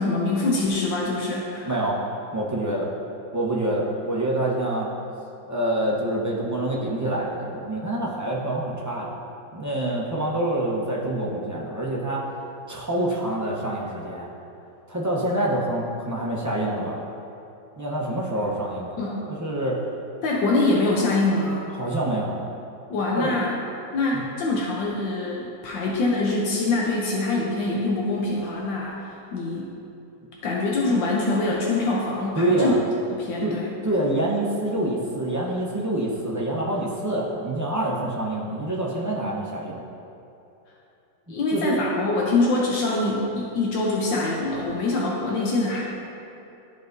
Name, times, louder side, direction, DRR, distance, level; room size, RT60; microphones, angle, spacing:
voice 1, 0.0-1.7 19.0-19.3 20.2-21.7 22.9-23.6 23.9-29.0 29.3-29.7 30.4-32.7 33.1-33.7 41.3-45.9, left 2 dB, 85° left, -3 dB, 1.5 m, -24 dB
voice 2, 1.7-2.0 2.3-2.9 3.3-4.9 5.5-9.1 9.5-12.3 12.7-14.3 14.9-17.0 17.8-19.0 19.3-19.8 21.8-22.4 23.2-23.3 24.1-24.2 32.4-32.8 33.4-33.5 33.8-39.8 41.5-41.8, right 1 dB, 25° right, -5 dB, 0.3 m, -26 dB
13.0 x 4.8 x 2.6 m, 2.8 s
omnidirectional pair, 1.9 m